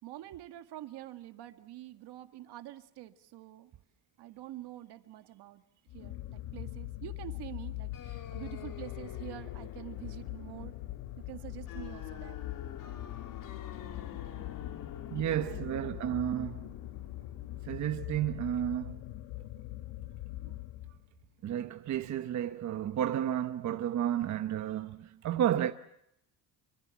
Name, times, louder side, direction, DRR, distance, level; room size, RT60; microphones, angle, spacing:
voice 1, 0.0-3.7 4.2-5.6 5.9-10.7 11.2-12.4 15.2-16.2, right 14 dB, 65° right, 2.0 m, -46 dB
sound 1, 5.9-21.2, left 15 dB, 80° left, 1.4 m, -42 dB
sound 2, 7.9-18.4, left 8 dB, 50° left, 2.2 m, -49 dB
voice 2, 15.1-16.7 17.6-19.0 20.4-20.5 21.4-25.7, right 11 dB, 40° right, 1.0 m, -32 dB
26.0 x 25.0 x 7.2 m
cardioid pair, 160°, 42 cm